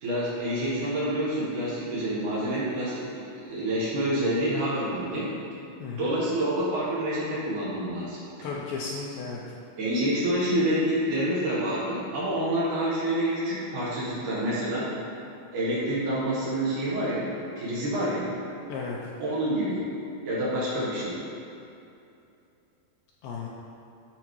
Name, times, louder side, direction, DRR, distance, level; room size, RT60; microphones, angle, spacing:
voice 1, 0.0-3.0 3.4-5.3 6.0-8.2 9.8-14.9 15.5-18.3 19.2-19.8 20.3-21.2, right 1 dB, 65° right, -8 dB, 2.4 m, -27 dB
voice 2, 5.8-6.1 8.4-9.4 18.7-19.0 23.2-23.5, left 4 dB, 80° left, -4 dB, 2.2 m, -34 dB
13.5 x 4.8 x 3.1 m, 2.7 s
omnidirectional pair, 4.5 m